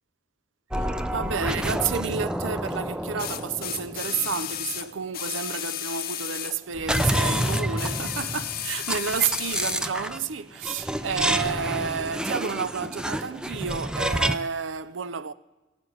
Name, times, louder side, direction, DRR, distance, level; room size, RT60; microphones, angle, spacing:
sound 1, 0.7-4.7 6.7-10.3 10.6-14.4, right 1 dB, 5° right, 0.4 m, -29 dB
voice 1, 0.8-15.3, right 6 dB, 85° right, 0.6 m, -30 dB
sound 2, 1.6-1.7 3.2-6.6 6.9-9.8 10.8-10.9, left 11 dB, 50° left, 0.6 m, -33 dB
17.5 x 8.1 x 6.3 m
head